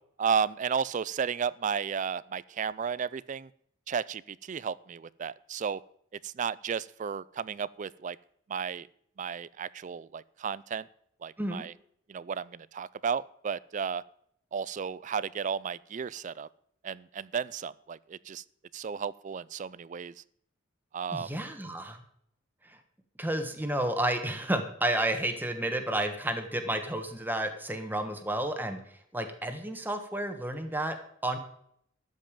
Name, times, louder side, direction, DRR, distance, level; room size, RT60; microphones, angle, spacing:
voice 1, 0.2-3.5 3.9-5.8 6.2-8.2 8.5-8.9 9.2-10.9 11.2-11.7 12.1-14.0 14.5-16.5 16.8-18.4 18.7-20.1 20.9-21.3, right 6 dB, 40° right, 20 dB, 0.3 m, -33 dB
voice 2, 21.1-22.0 22.7-22.8 23.2-28.8 29.1-31.0 31.2-31.4, right 1 dB, 10° right, 6 dB, 1.3 m, -31 dB
13.0 x 5.4 x 8.8 m, 0.69 s
head